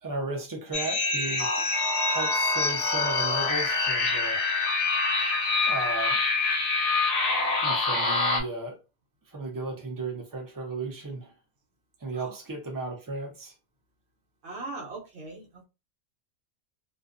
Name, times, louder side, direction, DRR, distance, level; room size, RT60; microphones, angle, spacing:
voice 1, 0.0-1.6 2.1-4.4 5.7-6.2 7.6-8.8 9.3-11.3 12.0-13.5, right 3 dB, 25° right, 0.4 m, -35 dB
sound 1, 0.7-8.4, left 3 dB, 75° left, 0.9 m, -25 dB
voice 2, 14.4-15.6, right 3 dB, 65° right, 1.0 m, -40 dB
2.5 x 2.2 x 2.4 m
omnidirectional pair, 1.3 m